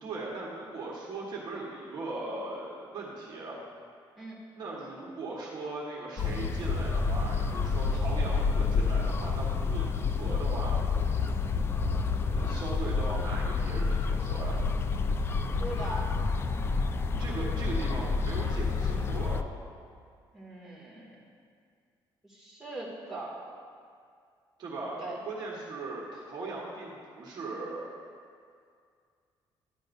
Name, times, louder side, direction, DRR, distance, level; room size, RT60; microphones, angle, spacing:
voice 1, 0.0-3.7 4.5-10.8 12.4-14.7 17.2-19.4 24.6-27.9, right 3 dB, 50° right, -4 dB, 1.5 m, -39 dB
sound 1, 6.2-19.4, left 4 dB, 25° left, 0.4 m, -29 dB
voice 2, 15.5-16.1 20.3-21.2 22.2-23.4 25.0-25.2, right 2 dB, 5° right, -7 dB, 2.3 m, -40 dB
13.0 x 10.5 x 2.7 m, 2.2 s
cardioid pair, 140°, 9 cm